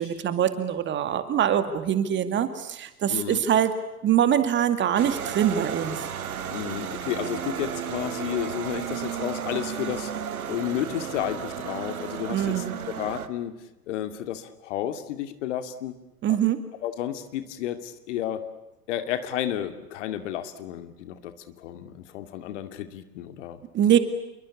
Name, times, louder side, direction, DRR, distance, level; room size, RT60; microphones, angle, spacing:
voice 1, 0.0-3.7 4.0-6.1 12.3-12.7 16.2-16.6 23.7-24.0, right 10 dB, 25° right, 10 dB, 2.3 m, -23 dB
voice 2, 3.1-3.4 6.5-16.0 16.3-16.4 16.8-18.4 18.9-23.6 23.9-24.0, left 11 dB, 50° left, 10 dB, 2.6 m, -32 dB
sound 1, 5.0-13.3, right 8 dB, 65° right, 2.0 m, -33 dB
28.0 x 23.5 x 8.5 m, 0.96 s
figure-of-eight pair, 95°, 46 cm